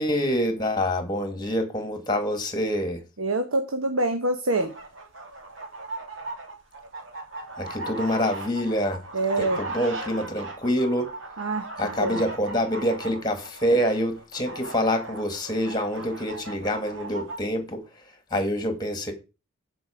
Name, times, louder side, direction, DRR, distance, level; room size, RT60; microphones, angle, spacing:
voice 1, 0.0-3.0 7.6-9.0 9.4-11.1 11.8-17.8 18.3-19.1, equal, 20° left, 1.8 m, -26 dB
voice 2, 3.2-4.7 9.1-9.6 11.4-12.2, right 2 dB, 85° right, 1.2 m, -26 dB
sound 1, 4.5-17.4, right 2 dB, 65° right, 2.7 m, -38 dB
14.5 x 5.1 x 5.0 m
head